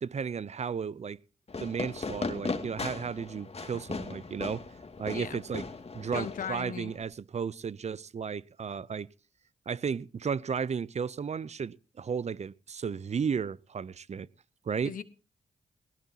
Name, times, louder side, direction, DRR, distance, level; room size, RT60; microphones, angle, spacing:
voice 1, 0.0-1.2 1.6-4.6 5.0-5.6 5.9-9.1 9.7-14.3 14.7-14.9, right 6 dB, 50° right, 0.7 m, -34 dB
Fireworks, 1.5-7.0, left 4 dB, 45° left, 2.5 m, -38 dB
voice 2, 5.1-5.4 6.1-6.9 14.8-15.0, left 8 dB, 70° left, 1.3 m, -37 dB
19.5 x 18.0 x 2.9 m
supercardioid pair, 45°, 15 cm